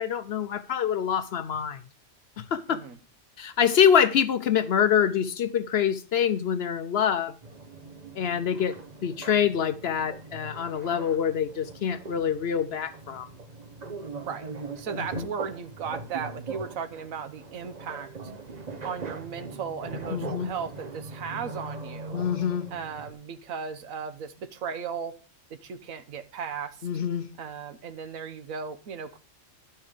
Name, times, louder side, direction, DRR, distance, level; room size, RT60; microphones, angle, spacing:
voice 1, 0.0-1.8 2.4-2.8 3.4-7.3 8.2-8.8 9.0-13.3 15.0-15.3 20.1-20.5 22.1-22.7 26.8-27.3, left 8 dB, 60° left, 0.7 m, -25 dB
sound 1, 7.4-23.1, right 3 dB, 35° right, 1.0 m, -41 dB
voice 2, 14.8-18.1 18.8-22.3 22.7-25.2 25.5-26.8 27.4-29.2, right 6 dB, 85° right, 1.3 m, -36 dB
12.0 x 5.6 x 4.9 m
omnidirectional pair, 1.4 m